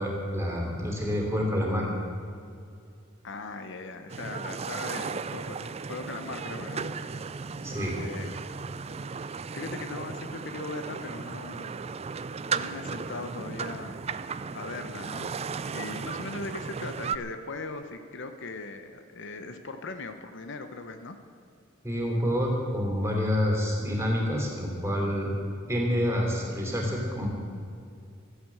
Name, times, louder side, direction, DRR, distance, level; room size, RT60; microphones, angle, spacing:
voice 1, 0.0-1.9 7.6-8.0 21.8-25.3 25.7-27.3, equal, 15° right, -1 dB, 3.3 m, -28 dB
voice 2, 3.2-6.9 7.9-8.5 8.9-9.1 9.5-11.7 12.5-14.0 14.5-21.2, left 3 dB, 60° left, 8 dB, 0.9 m, -39 dB
sound 1, 4.1-17.2, right 5 dB, 30° right, 0.4 m, -35 dB
14.0 x 11.0 x 7.7 m, 2.4 s
head